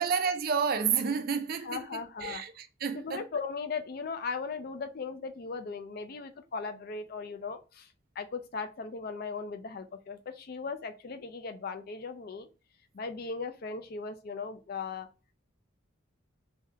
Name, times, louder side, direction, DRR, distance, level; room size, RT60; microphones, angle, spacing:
voice 1, 0.0-3.2, right 6 dB, 45° right, 0.4 m, -30 dB
voice 2, 1.6-2.4 2.9-7.9 8.2-12.5 12.9-15.1, left 4 dB, 45° left, 0.4 m, -38 dB
3.5 x 2.2 x 2.7 m
head